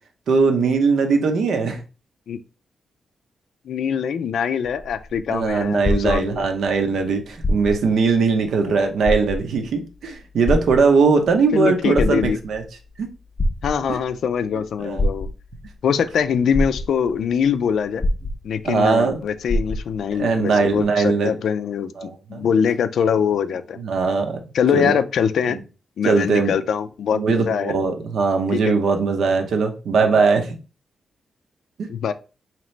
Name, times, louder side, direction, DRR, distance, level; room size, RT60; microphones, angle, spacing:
voice 1, 0.3-1.8 5.3-12.6 13.0-13.1 14.8-15.1 18.6-19.2 20.2-21.3 22.0-22.5 23.8-24.4 24.7-25.0 26.0-26.5 27.1-30.5 31.8-31.9, right 4 dB, 75° right, 5 dB, 0.7 m, -20 dB
voice 2, 3.7-6.4 8.6-8.7 11.5-12.4 13.6-15.3 15.8-18.0 18.4-23.8 24.5-25.6 26.0-27.7 28.5-28.6 31.9-32.1, left 7 dB, 75° left, 12 dB, 0.3 m, -23 dB
sound 1, 4.6-6.7 7.3-8.0 8.4-8.5 9.0-9.7 10.5-11.3 11.8-12.6 13.4-14.1 15.0-15.7 16.2-16.3 16.5-17.2 18.0-18.8 19.1-19.2 19.5-20.1 20.8-20.9, left 1 dB, 25° left, 0.6 m, -24 dB
3.9 x 2.9 x 3.2 m, 0.34 s
wide cardioid pair, 175°, 0 cm